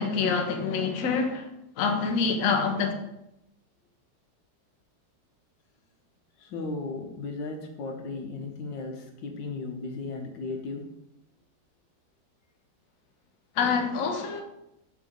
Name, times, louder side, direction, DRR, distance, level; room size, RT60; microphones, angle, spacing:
voice 1, 0.0-1.5 1.8-2.9 13.6-14.4, left 5 dB, 55° left, 1.1 m, -26 dB
voice 2, 6.4-10.9, left 3 dB, 80° left, 1.7 m, -35 dB
6.4 x 3.9 x 6.0 m
omnidirectional pair, 2.0 m